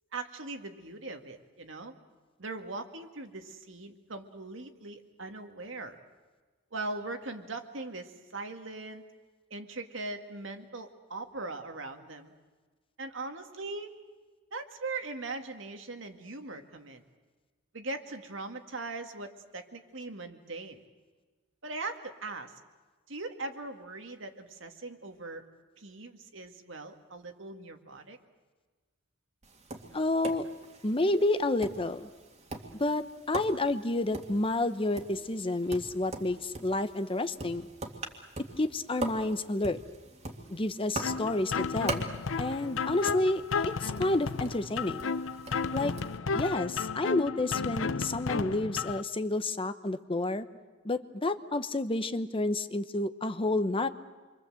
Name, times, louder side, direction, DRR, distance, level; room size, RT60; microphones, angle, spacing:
voice 1, 0.1-1.9 2.4-6.0 6.7-9.0 9.5-12.3 13.0-14.0 14.5-17.0 17.7-20.8 21.6-22.5 23.1-25.4 25.8-28.2, right 3 dB, 70° right, 5 dB, 2.0 m, -40 dB
Tap, 29.4-46.2, right 2 dB, 35° right, 2.2 m, -43 dB
voice 2, 29.9-30.4 30.8-32.1 32.8-37.7 38.6-39.8 40.5-42.1 42.4-45.1 45.7-45.9 46.3-50.5 50.8-53.9, left 2 dB, 25° left, 11 dB, 0.9 m, -30 dB
sound 1, 41.0-49.0, left 5 dB, 80° left, 0.8 m, -33 dB
28.0 x 24.0 x 7.8 m, 1.4 s
head